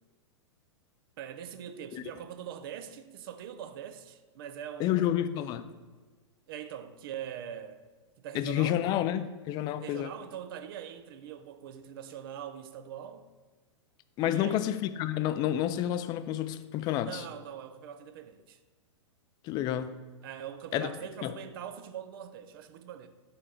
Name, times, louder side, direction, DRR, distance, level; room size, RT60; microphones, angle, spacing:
voice 1, 1.2-5.2 6.5-7.8 8.2-8.8 9.8-13.3 14.2-14.7 17.1-18.6 20.2-23.1, right 9 dB, 50° right, 0.5 m, -42 dB
voice 2, 4.8-5.6 8.3-10.1 14.2-17.2 19.4-19.9 20.7-20.9 21.2-21.3, left 12 dB, 25° left, 0.3 m, -29 dB
5.5 x 4.3 x 5.0 m
figure-of-eight pair, 100°, 16 cm